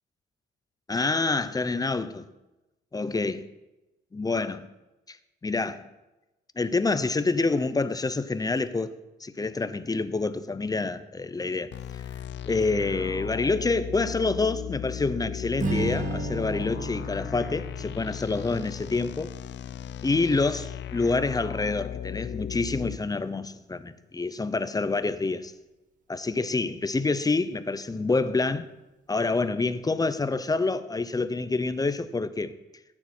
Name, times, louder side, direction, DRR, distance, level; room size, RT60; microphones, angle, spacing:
voice 1, 0.9-2.3 2.9-3.4 4.1-4.7 5.1-5.2 5.4-5.8 6.6-8.9 9.2-12.0 12.4-19.3 20.0-25.5 26.1-28.7 29.1-32.5, left 3 dB, 20° left, 0.7 m, -27 dB
sound 1, 11.7-23.0, left 9 dB, 65° left, 0.6 m, -36 dB
Strum, 15.6-20.0, right 2 dB, 40° right, 2.0 m, -35 dB
14.5 x 9.9 x 4.4 m
cardioid pair, 90°, 20 cm